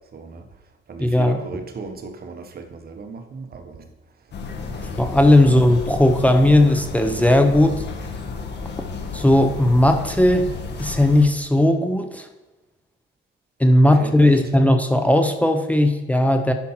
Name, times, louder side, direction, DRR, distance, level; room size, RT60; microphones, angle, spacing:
voice 1, 0.1-0.5 0.9-3.9 4.7-5.0 5.5-5.6 14.0-14.4, right 4 dB, 50° right, 6 dB, 1.2 m, -36 dB
voice 2, 1.0-1.4 5.0-7.8 9.1-10.5 10.8-12.3 13.6-16.5, left 1 dB, 5° left, 6 dB, 0.8 m, -17 dB
sound 1, 4.3-11.3, left 4 dB, 60° left, 1.5 m, -32 dB
10.5 x 5.6 x 4.4 m, 1.1 s
cardioid pair, 90°, 20 cm